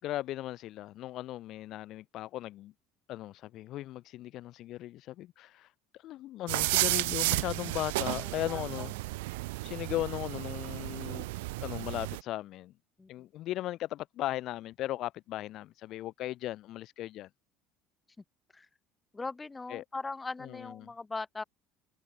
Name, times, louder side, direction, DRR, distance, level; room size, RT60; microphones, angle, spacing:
voice 1, 0.0-2.7 3.1-5.7 6.0-8.9 9.6-11.3 11.6-12.7 13.1-17.3 19.7-19.8 20.4-20.9, left 14 dB, 60° left, 6.3 m, -37 dB
sound 1, 6.5-12.2, right 22 dB, 75° right, 0.6 m, -32 dB
voice 2, 8.1-8.9 9.7-9.8 13.0-13.1 18.5-18.7 19.1-21.4, left 3 dB, 20° left, 5.1 m, -40 dB
hypercardioid pair, 70°, 0 cm